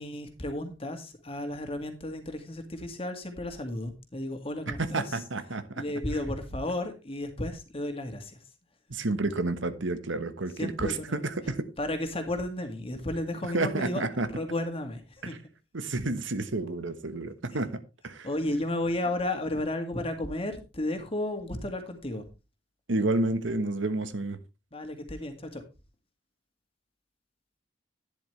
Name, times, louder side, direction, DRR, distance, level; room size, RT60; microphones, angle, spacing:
voice 1, 0.0-5.0 5.8-8.4 10.6-11.1 11.8-14.0 14.3-15.3 17.5-17.6 18.2-22.3 24.7-25.6, left 1 dB, 30° left, 2.1 m, -33 dB
voice 2, 4.7-5.8 8.9-11.7 13.5-14.3 15.2-15.4 15.7-18.3 22.9-24.4, right 2 dB, 80° right, 1.2 m, -30 dB
11.5 x 10.5 x 3.3 m
head